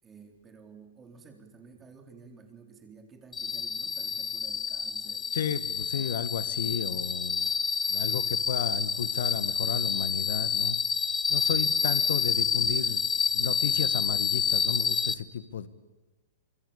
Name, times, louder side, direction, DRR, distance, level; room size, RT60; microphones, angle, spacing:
voice 1, 0.0-5.3, right 5 dB, 15° right, 4 dB, 3.9 m, -52 dB
sound 1, 3.3-15.1, left 5 dB, 15° left, 1.0 m, -28 dB
voice 2, 5.3-7.5 7.9-10.8 11.3-13.0 13.3-15.7, left 8 dB, 75° left, 14 dB, 1.7 m, -33 dB
25.0 x 21.5 x 8.7 m, 1.2 s
hypercardioid pair, 145°, 0 cm